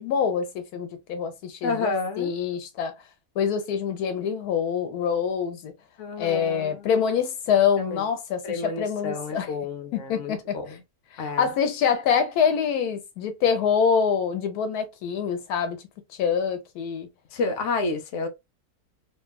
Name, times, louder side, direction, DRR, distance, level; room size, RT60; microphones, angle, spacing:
voice 1, 0.0-2.9 3.4-5.7 6.2-9.5 9.9-10.6 11.1-15.8 16.2-17.1, left 7 dB, 85° left, 1.1 m, -25 dB
voice 2, 1.6-2.3 6.0-7.1 7.8-8.1 8.4-10.8 11.2-11.5 17.3-18.3, left 4 dB, 60° left, 0.9 m, -30 dB
2.9 x 2.2 x 2.2 m
omnidirectional pair, 1.6 m